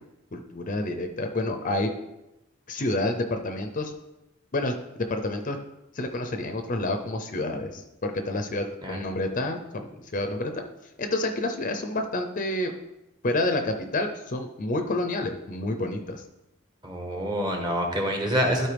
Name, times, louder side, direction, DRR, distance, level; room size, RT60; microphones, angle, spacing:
voice 1, 0.3-1.9 2.7-3.9 4.5-5.6 5.9-10.6 11.0-12.7 13.2-16.2, left 2 dB, 40° left, 5 dB, 0.6 m, -29 dB
voice 2, 16.8-18.7, equal, 20° right, 1 dB, 1.3 m, -26 dB
12.5 x 4.4 x 3.4 m, 0.94 s
head